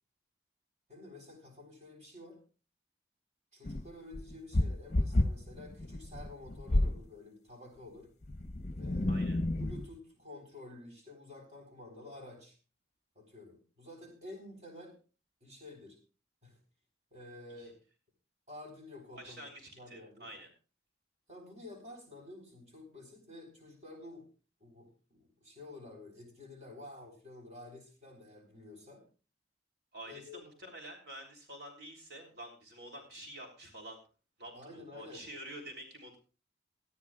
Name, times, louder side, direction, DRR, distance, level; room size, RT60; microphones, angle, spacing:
voice 1, 0.9-2.4 3.5-8.1 8.8-12.6 13.1-15.0 15.4-16.0 16.4-16.6 17.1-17.8 18.5-19.4 19.7-20.3 21.3-24.3 24.6-29.0 30.1-30.4 34.5-35.3, left 2 dB, 40° right, 2 dB, 4.1 m, -50 dB
sound 1, 3.6-7.1 8.2-10.0, left 1 dB, 40° left, 0.7 m, -31 dB
voice 2, 9.1-9.4 17.6-17.7 19.1-20.5 29.9-34.0 34.4-36.2, right 1 dB, 65° right, 1 dB, 3.5 m, -48 dB
19.0 x 13.5 x 2.4 m, 0.34 s
head